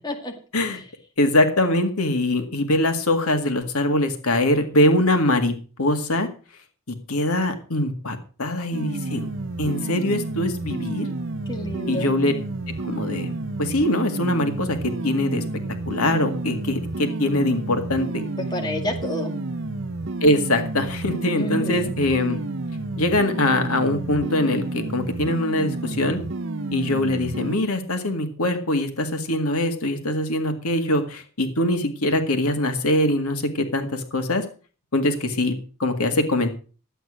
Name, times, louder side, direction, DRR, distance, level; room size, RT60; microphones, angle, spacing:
voice 1, 1.2-6.3 6.9-9.3 9.6-11.1 11.9-12.3 12.8-13.3 13.6-14.8 15.0-15.4 15.9-18.2 20.2-22.4 23.0-26.2 26.7-34.4 34.9-36.5, left 1 dB, 85° left, 7 dB, 2.0 m, -23 dB
sound 1, 8.7-27.6, right 2 dB, 55° right, 0.7 m, -30 dB
voice 2, 11.5-12.1 18.5-19.3 21.4-21.9, left 1 dB, 20° left, 2 dB, 2.1 m, -29 dB
12.5 x 8.4 x 6.3 m, 0.37 s
head